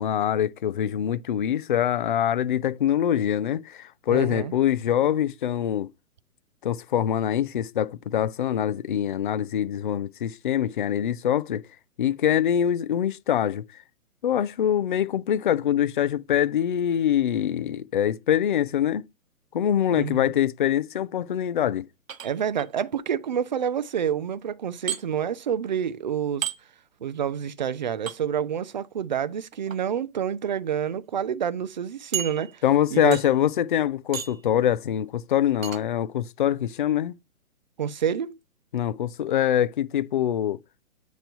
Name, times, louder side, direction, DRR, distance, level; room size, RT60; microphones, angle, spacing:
voice 1, 0.0-5.9 6.6-11.6 12.0-13.6 14.2-19.0 19.5-21.8 32.6-37.1 38.7-40.6, left 10 dB, 40° left, 0.4 m, -24 dB
voice 2, 4.1-4.5 19.9-20.3 22.2-26.5 27.0-32.6 32.9-33.2 37.8-38.4, right 8 dB, 35° right, 0.4 m, -28 dB
sound 1, 22.1-22.7 24.9-25.0 26.4-26.6 28.1-28.2 29.5-29.8 30.5-30.6 31.0-31.1 32.1-32.8 33.1-33.5 34.1-34.5 35.6-35.8, right 9 dB, 65° right, 1.0 m, -33 dB
8.7 x 3.1 x 5.3 m
figure-of-eight pair, 125°, 43 cm